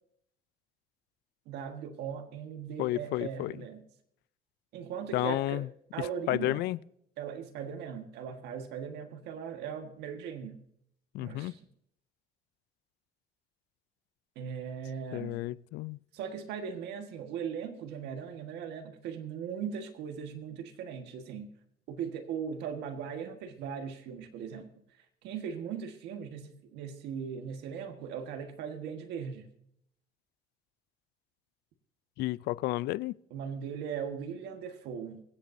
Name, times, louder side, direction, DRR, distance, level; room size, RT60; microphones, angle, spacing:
voice 1, 1.4-3.8 4.7-5.7 5.9-6.6 7.2-10.6 11.2-11.7 14.3-15.4 16.1-21.5 21.9-24.7 25.0-29.5 33.3-35.2, right 7 dB, 85° right, 1.5 m, -39 dB
voice 2, 2.8-3.6 5.1-5.7 6.3-6.8 11.1-11.5 15.1-16.0 32.2-33.1, left 17 dB, 75° left, 0.4 m, -31 dB
24.0 x 8.4 x 2.7 m
cardioid pair, 110°, 17 cm